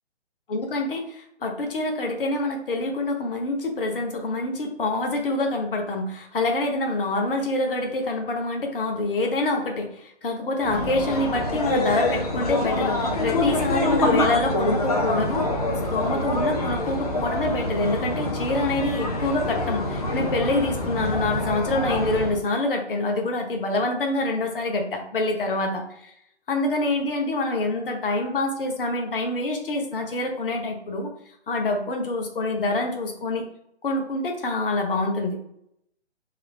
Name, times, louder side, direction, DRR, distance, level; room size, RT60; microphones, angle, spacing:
voice 1, 0.5-15.5 15.9-26.1 26.5-31.1 31.5-33.4 33.8-35.4, left 2 dB, 55° left, 3 dB, 1.0 m, -26 dB
sound 1, 10.6-22.4, left 2 dB, 35° left, 0.6 m, -26 dB
3.8 x 3.4 x 3.3 m, 0.74 s
hypercardioid pair, 155°, 34 cm